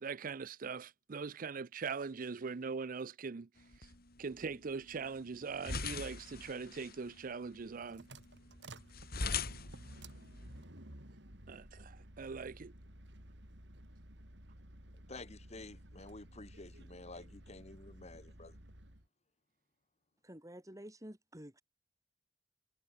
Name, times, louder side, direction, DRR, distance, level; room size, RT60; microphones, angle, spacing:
voice 1, 0.0-3.5 3.8-3.9 4.2-8.0 9.2-9.4 11.5-12.7, right 5 dB, 50° right, 0.5 m, -41 dB
sound 1, 3.6-10.6, left 4 dB, 55° left, 4.3 m, -43 dB
sound 2, 7.5-19.1, right 1 dB, 65° right, 6.5 m, -54 dB
voice 2, 15.1-18.6, left 2 dB, 35° left, 2.5 m, -51 dB
voice 3, 20.2-21.6, right 1 dB, 20° right, 4.3 m, -50 dB
head